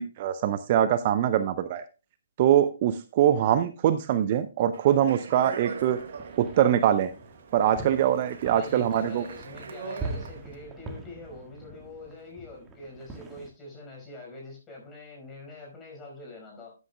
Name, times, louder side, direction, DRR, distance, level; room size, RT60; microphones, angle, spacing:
voice 1, 0.0-1.8 2.4-6.0 6.4-7.1 7.5-9.2, right 10 dB, 40° right, 12 dB, 0.6 m, -23 dB
Speech, 4.7-10.5, right 5 dB, 55° right, 1.1 m, -42 dB
sound 1, 5.7-13.5, right 3 dB, 15° right, 1.7 m, -43 dB
voice 2, 8.4-16.7, left 2 dB, 15° left, 0 dB, 5.2 m, -44 dB
13.0 x 9.5 x 2.3 m, 0.31 s
figure-of-eight pair, 130°, 0 cm